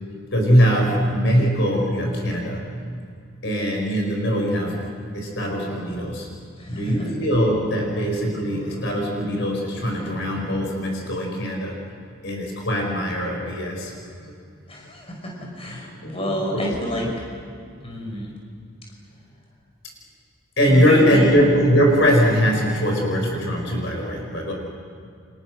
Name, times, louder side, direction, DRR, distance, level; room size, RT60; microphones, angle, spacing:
voice 1, 0.3-2.6 3.4-4.9 5.1-6.3 6.7-11.7 12.2-13.9 14.2-14.3 16.0-16.7 20.6-24.5, equal, 60° left, 1 dB, 5.5 m, -21 dB
voice 2, 6.6-7.1 14.7-17.2 17.8-18.3 20.7-21.3, equal, 30° left, -1 dB, 5.9 m, -29 dB
30.0 x 27.5 x 6.4 m, 2.3 s
head